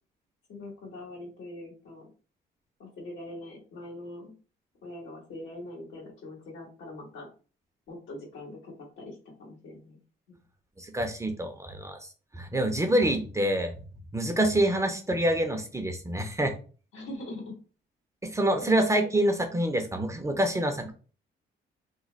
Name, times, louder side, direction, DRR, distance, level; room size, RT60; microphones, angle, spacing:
voice 1, 0.5-2.0 2.8-4.3 4.8-7.3 7.9-10.0 10.3-10.4 16.9-17.5 18.6-18.7, left 1 dB, 75° left, -1 dB, 1.7 m, -42 dB
voice 2, 10.8-12.0 12.3-13.7 14.1-16.5 18.2-20.9, right 1 dB, 15° right, 6 dB, 0.6 m, -26 dB
3.1 x 2.1 x 3.9 m, 0.37 s
cardioid pair, 90°, 20 cm